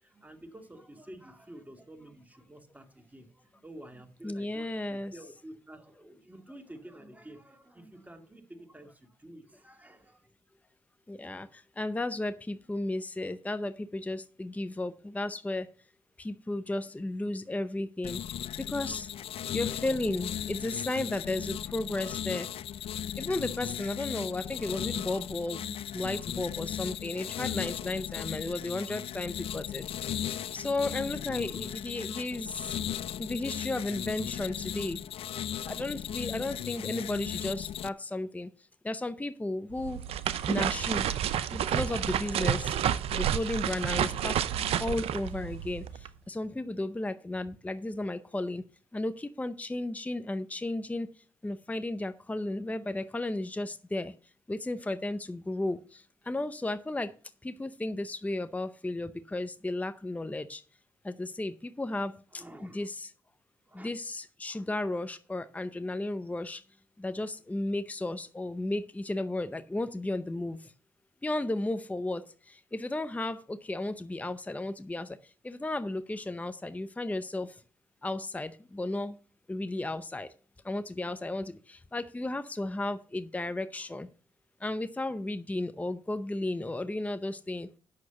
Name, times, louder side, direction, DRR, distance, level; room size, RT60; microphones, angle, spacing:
voice 1, 0.0-10.3 62.3-62.9 63.6-63.9, right 1 dB, 15° right, 2.3 m, -50 dB
voice 2, 4.2-5.1 11.1-11.5 11.8-15.7 16.2-18.2 18.7-19.1 19.5-22.5 23.2-29.8 30.5-32.6 33.2-35.0 35.7-38.5 38.8-40.0 40.5-41.1 41.5-42.7 43.1-44.4 44.8-45.8 46.3-48.6 48.9-51.1 51.4-54.1 54.5-55.8 56.3-57.1 57.4-60.6 61.1-62.1 62.6-63.1 63.8-66.6 67.0-70.6 71.2-72.2 72.7-75.1 75.4-77.5 78.0-79.1 79.5-80.3 80.7-81.5 81.9-84.1 84.6-87.7, left 2 dB, 15° left, 0.7 m, -34 dB
sound 1, 18.0-37.9, left 10 dB, 65° left, 0.5 m, -37 dB
sound 2, 39.7-46.1, right 10 dB, 70° right, 0.6 m, -30 dB
8.7 x 6.1 x 7.0 m
hypercardioid pair, 45°, 10 cm